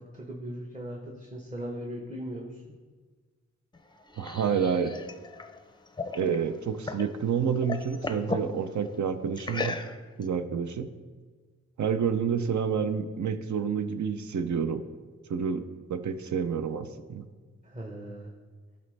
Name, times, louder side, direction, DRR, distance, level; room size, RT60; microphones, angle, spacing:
voice 1, 0.0-2.7 17.6-18.3, equal, 25° right, -1 dB, 1.1 m, -39 dB
sound 1, 3.7-7.1 7.4-8.5 9.4-10.2, left 3 dB, 15° left, 0.5 m, -36 dB
voice 2, 4.2-4.9 6.1-9.8 10.2-10.9 11.8-14.9 15.3-17.3, right 6 dB, 70° right, 10 dB, 0.6 m, -29 dB
12.0 x 4.2 x 3.3 m, 1.5 s
cardioid pair, 55°, 30 cm